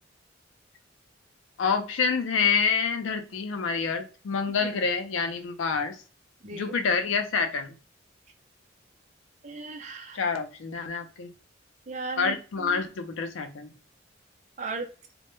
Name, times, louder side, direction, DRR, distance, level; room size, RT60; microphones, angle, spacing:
voice 1, 1.6-6.0 6.5-7.7 10.1-11.3 12.2-13.7, left 5 dB, 85° left, 0.4 m, -27 dB
voice 2, 6.4-6.7 9.4-10.2 11.9-12.8 14.6-14.9, right 3 dB, 40° right, 0.5 m, -36 dB
2.1 x 2.0 x 3.0 m
head